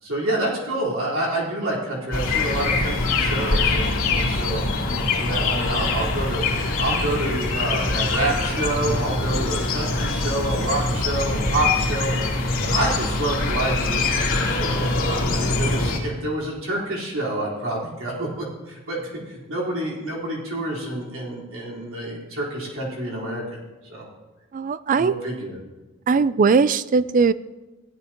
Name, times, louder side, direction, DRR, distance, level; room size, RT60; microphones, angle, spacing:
voice 1, 0.0-4.6 5.2-6.4 6.8-12.3 12.7-23.6 23.8-24.1 25.0-25.5, right 1 dB, 65° right, -5 dB, 4.2 m, -28 dB
sound 1, 2.1-16.0, left 3 dB, 75° left, 2.3 m, -23 dB
voice 2, 24.5-25.2 26.1-27.3, right 5 dB, 40° right, 17 dB, 0.3 m, -19 dB
16.0 x 12.0 x 3.0 m, 1.1 s
head